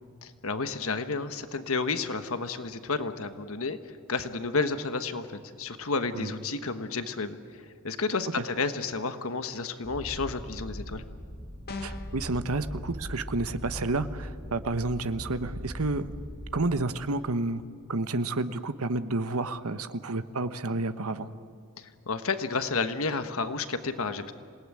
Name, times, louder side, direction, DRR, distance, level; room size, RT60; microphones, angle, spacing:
voice 1, 0.2-3.8 4.1-11.0 21.8-24.3, left 4 dB, 65° left, 10 dB, 1.3 m, -31 dB
Purr, 9.8-16.8, equal, 20° left, 5.3 m, -40 dB
sound 1, 11.7-12.2, left 3 dB, 45° left, 1.8 m, -38 dB
voice 2, 11.8-16.1 16.5-17.6 17.9-21.3, right 2 dB, 75° right, 11 dB, 1.1 m, -30 dB
27.0 x 19.0 x 9.8 m, 2.3 s
head